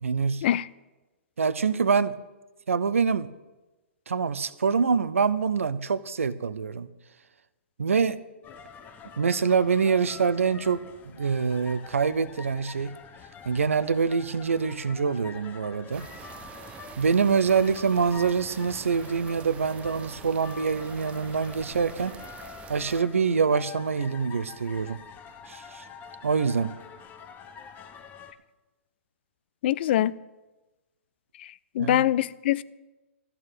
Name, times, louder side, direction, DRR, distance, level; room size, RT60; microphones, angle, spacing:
voice 1, 0.0-0.4 1.4-2.1 2.7-3.3 4.1-6.9 7.8-8.2 9.2-12.9 13.5-16.0 17.0-22.1 22.7-25.0 25.5-25.8 26.2-26.7 31.8-32.0, right 5 dB, 80° right, 0.6 m, -25 dB
sound 1, 8.4-28.3, left 6 dB, 25° left, 0.8 m, -46 dB
sound 2, 15.9-23.0, right 9 dB, 15° right, 0.4 m, -46 dB
voice 2, 29.6-30.2 31.4-32.6, left 12 dB, 50° left, 0.4 m, -24 dB
13.0 x 4.6 x 8.7 m
hypercardioid pair, 125°, 7 cm